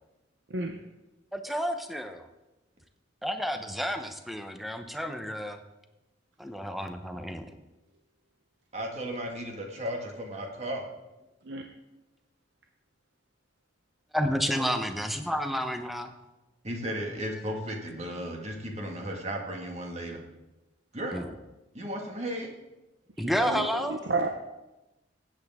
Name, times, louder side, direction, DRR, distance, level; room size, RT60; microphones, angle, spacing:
voice 1, 0.5-0.8 11.4-11.7 23.2-24.3, right 3 dB, 70° right, 5 dB, 0.7 m, -32 dB
voice 2, 1.3-2.3 3.2-5.6 6.4-7.4 14.1-16.1 21.1-21.3 23.2-24.0, equal, ahead, 6 dB, 0.8 m, -30 dB
voice 3, 8.7-10.8 16.6-20.2 20.9-21.3 21.7-22.5, equal, 35° right, 1 dB, 1.9 m, -35 dB
16.5 x 8.1 x 3.6 m, 1.0 s
head